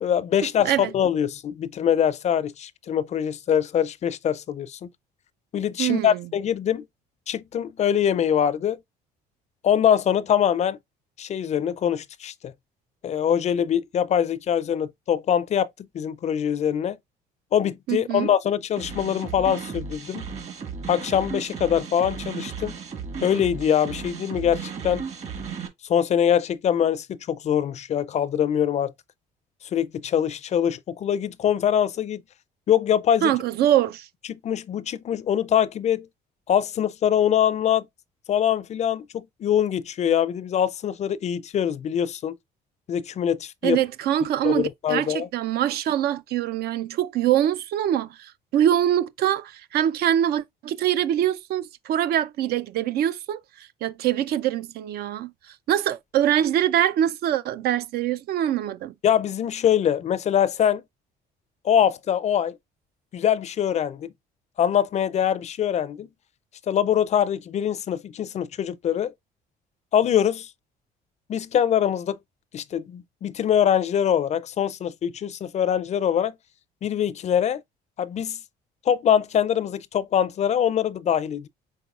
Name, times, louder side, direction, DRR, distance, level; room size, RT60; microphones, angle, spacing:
voice 1, 0.0-4.9 5.5-6.9 7.3-8.8 9.6-10.8 11.2-12.5 13.0-15.7 15.9-17.0 17.5-20.3 20.9-22.8 23.2-25.0 25.9-28.9 29.7-32.2 32.7-33.3 34.3-36.1 36.5-37.9 38.3-42.3 42.9-43.8 44.4-45.3 59.0-60.8 61.6-62.6 63.1-64.1 64.6-66.1 66.7-69.1 69.9-70.5 71.3-72.2 72.5-76.3 76.8-77.6 78.0-78.4 78.9-81.5, left 9 dB, 40° left, 0.4 m, -23 dB
voice 2, 5.8-6.2 17.9-18.3 33.2-34.1 43.6-53.4 53.8-55.3 55.7-58.9, right 11 dB, 65° right, 0.5 m, -24 dB
sound 1, 18.8-25.7, right 6 dB, 40° right, 1.5 m, -35 dB
5.3 x 3.8 x 2.4 m
cardioid pair, 110°, 17 cm